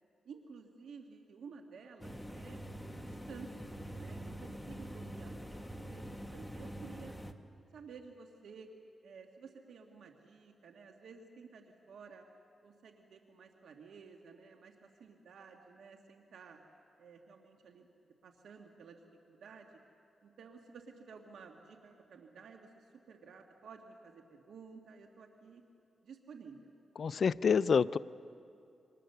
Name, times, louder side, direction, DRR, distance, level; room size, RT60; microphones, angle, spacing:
voice 1, 0.2-2.6 3.0-3.6 3.9-7.2 7.7-8.7 9.0-12.2 12.6-16.6 17.0-19.0 19.3-19.8 20.2-25.6 26.0-26.7, right 5 dB, 80° right, 3 dB, 1.7 m, -53 dB
sound 1, 2.0-7.3, equal, 5° left, 1.4 m, -45 dB
voice 2, 27.0-28.0, left 6 dB, 60° left, 15 dB, 0.5 m, -27 dB
28.0 x 25.5 x 6.8 m, 2.6 s
cardioid pair, 90°, 0 cm